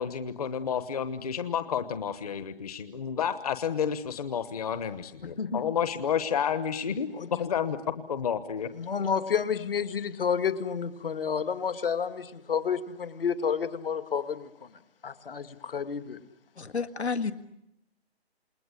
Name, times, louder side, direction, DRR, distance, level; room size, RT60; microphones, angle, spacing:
voice 1, 0.0-7.1 7.4-7.8 8.1-8.7, left 7 dB, 35° left, 11 dB, 1.1 m, -30 dB
voice 2, 5.2-5.6 7.1-7.5 8.7-14.7 15.0-16.2, left 6 dB, 60° left, 10 dB, 2.0 m, -30 dB
voice 3, 16.6-17.3, left 5 dB, 90° left, 10 dB, 1.9 m, -30 dB
28.5 x 20.5 x 9.7 m, 0.84 s
hypercardioid pair, 160°, 32 cm